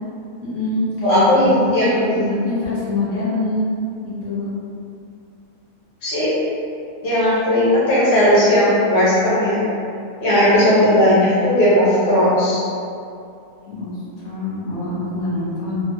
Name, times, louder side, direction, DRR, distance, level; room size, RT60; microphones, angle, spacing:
voice 1, 0.4-3.7 4.0-4.5 10.6-11.0 13.7-15.8, left 2 dB, 65° left, -10 dB, 1.3 m, -24 dB
voice 2, 1.0-2.1 6.0-6.3 7.0-9.6 10.2-12.6, equal, 25° left, -11 dB, 0.9 m, -16 dB
3.5 x 2.1 x 2.8 m, 2.5 s
omnidirectional pair, 1.6 m